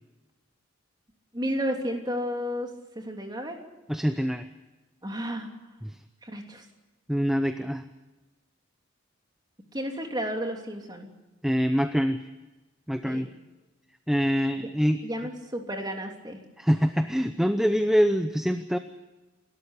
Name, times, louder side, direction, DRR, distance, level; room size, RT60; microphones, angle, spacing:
voice 1, 1.3-3.6 5.0-5.5 6.2-6.6 9.7-11.1 13.0-13.3 14.6-14.7 15.0-16.4, equal, 20° right, 3 dB, 3.1 m, -32 dB
voice 2, 3.9-4.5 5.8-6.0 7.1-7.8 11.4-12.2 12.9-13.3 14.1-15.0 16.6-18.8, equal, ahead, 8 dB, 0.7 m, -24 dB
29.0 x 13.0 x 9.9 m, 1.1 s
head